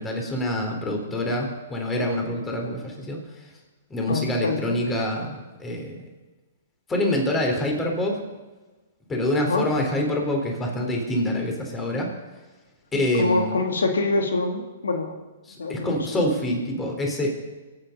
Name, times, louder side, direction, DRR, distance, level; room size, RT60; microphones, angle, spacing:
voice 1, 0.0-3.2 3.9-6.0 6.9-8.2 9.1-12.1 12.9-13.6 15.5-17.3, left 1 dB, 15° left, 1 dB, 4.2 m, -26 dB
voice 2, 4.1-4.8 9.5-9.7 12.9-15.2 15.6-16.3, left 3 dB, 85° left, 4 dB, 2.0 m, -26 dB
23.5 x 9.2 x 5.5 m, 1.2 s
hypercardioid pair, 130°, 0 cm